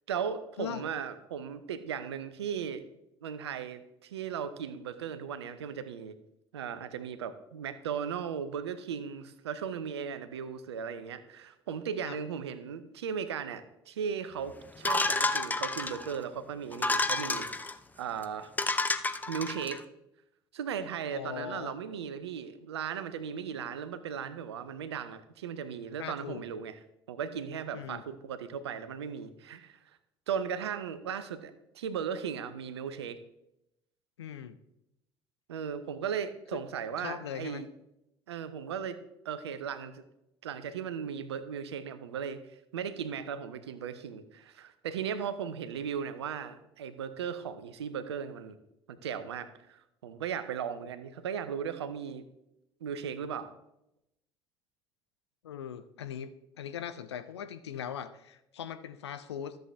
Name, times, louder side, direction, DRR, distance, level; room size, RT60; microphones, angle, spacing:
voice 1, 0.1-2.8 3.2-6.1 6.5-17.5 18.0-18.5 19.3-19.8 20.5-26.8 27.1-29.7 30.3-33.2 35.5-37.7 38.3-39.0 39.2-40.0 40.4-42.4 42.7-48.6 48.9-52.2 52.8-53.5, right 7 dB, 75° right, 12 dB, 0.7 m, -37 dB
sound 1, 14.8-16.2 16.7-17.7 18.2-18.3 18.6-19.8, left 2 dB, 10° left, 0.5 m, -30 dB
voice 2, 21.1-21.8 26.0-26.4 27.7-28.0 34.2-34.6 36.5-36.6 37.0-37.6 55.4-56.3 56.6-59.6, left 9 dB, 75° left, 11 dB, 0.6 m, -40 dB
13.0 x 7.8 x 3.3 m, 0.85 s
figure-of-eight pair, 60°, 14 cm